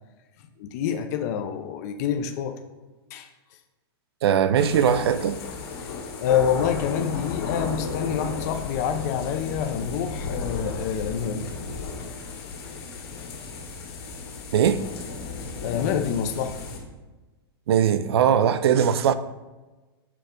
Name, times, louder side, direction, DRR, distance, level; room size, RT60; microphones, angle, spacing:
voice 1, 0.6-2.6 3.1-3.3 6.2-11.5 15.6-16.6, left 8 dB, 40° left, 6 dB, 0.5 m, -27 dB
voice 2, 4.2-5.4 14.5-14.8 17.7-19.1, right 8 dB, 80° right, 14 dB, 0.5 m, -20 dB
sound 1, 4.5-16.8, left 4 dB, 70° left, 2.1 m, -34 dB
6.8 x 3.4 x 5.0 m, 1.2 s
supercardioid pair, 155°, 13 cm